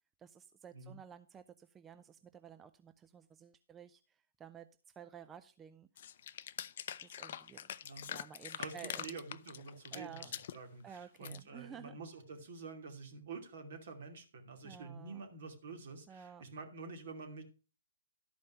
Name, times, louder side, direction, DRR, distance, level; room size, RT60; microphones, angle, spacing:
voice 1, 0.2-4.7 5.0-5.9 7.0-7.7 8.0-9.1 9.9-10.3 10.8-12.0 14.6-15.2 16.1-16.5, right 8 dB, 15° right, 12 dB, 0.4 m, -53 dB
sound 1, 6.0-10.6 11.0-11.4, left 10 dB, 50° left, 0.4 m, -44 dB
voice 2, 8.6-17.4, right 4 dB, 60° right, 5 dB, 2.5 m, -48 dB
12.0 x 5.2 x 5.6 m, 0.35 s
hypercardioid pair, 130°, 0 cm